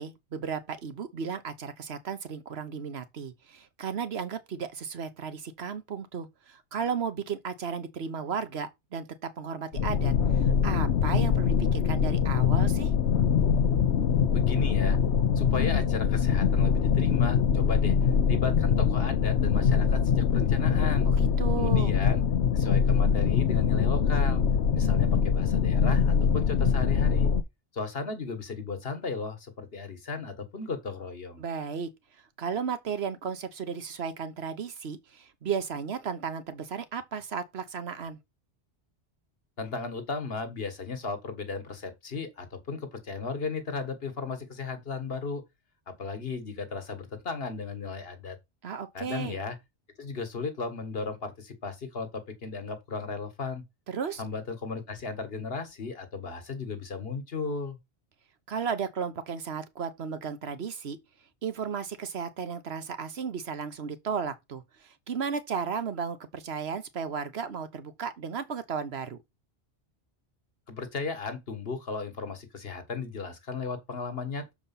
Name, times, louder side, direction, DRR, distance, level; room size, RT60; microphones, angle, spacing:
voice 1, 0.0-10.1 10.4-12.9 21.1-21.9 31.4-31.9 32.4-38.2 48.6-49.4 53.9-54.2 58.5-61.0 61.4-69.2, right 6 dB, 70° right, 1.3 m, -34 dB
sound 1, 9.7-27.4, left 7 dB, 80° left, 1.0 m, -23 dB
voice 2, 14.3-15.0 15.3-21.1 21.5-22.2 22.5-24.4 24.7-27.3 27.7-31.4 39.6-45.4 45.9-48.4 48.9-49.6 50.0-53.6 54.2-57.8 70.7-74.5, left 4 dB, 60° left, 1.6 m, -35 dB
6.8 x 4.7 x 5.7 m
omnidirectional pair, 1.1 m